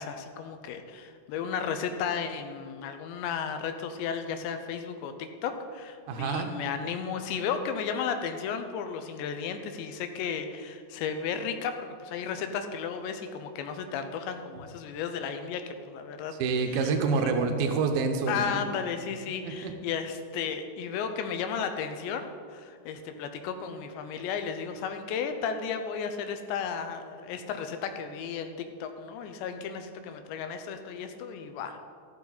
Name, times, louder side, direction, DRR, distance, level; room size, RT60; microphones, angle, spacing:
voice 1, 0.0-16.3 18.3-31.8, left 6 dB, 85° left, 7 dB, 3.0 m, -34 dB
voice 2, 6.1-6.5 16.3-18.6 19.4-19.7, right 4 dB, 70° right, 4 dB, 2.6 m, -27 dB
14.0 x 12.5 x 4.1 m, 2.1 s
omnidirectional pair, 5.1 m